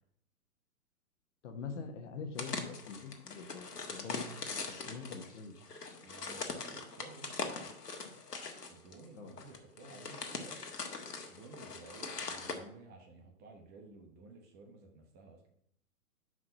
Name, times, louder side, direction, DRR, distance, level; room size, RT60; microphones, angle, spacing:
voice 1, 1.4-4.3 4.7-5.5 9.1-9.3, left 5 dB, 50° left, 6 dB, 1.3 m, -44 dB
sound 1, 2.4-12.6, left 4 dB, 90° left, 1.4 m, -42 dB
voice 2, 6.0-7.7 8.7-10.6 11.3-15.5, right 3 dB, 20° right, 3 dB, 1.0 m, -54 dB
5.9 x 4.9 x 5.8 m, 0.68 s
hypercardioid pair, 130°, 46 cm